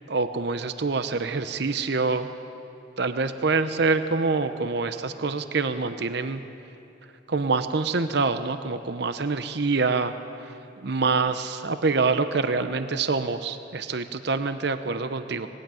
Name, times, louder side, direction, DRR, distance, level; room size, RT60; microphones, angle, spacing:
voice 1, 0.1-2.3 3.0-6.4 7.3-10.1 10.8-15.5, right 4 dB, 60° right, 10 dB, 0.8 m, -26 dB
19.5 x 18.0 x 9.1 m, 2.8 s
head